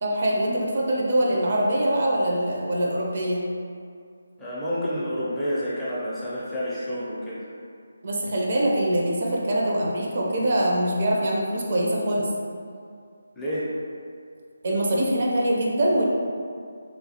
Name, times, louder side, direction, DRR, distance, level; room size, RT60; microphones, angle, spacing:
voice 1, 0.0-3.5 8.0-12.3 14.6-16.0, right 1 dB, 45° right, -3 dB, 0.5 m, -23 dB
voice 2, 4.4-7.4 13.4-13.7, equal, 5° left, -11 dB, 0.5 m, -29 dB
3.0 x 2.3 x 2.8 m, 2.3 s
figure-of-eight pair, 155°, 0 cm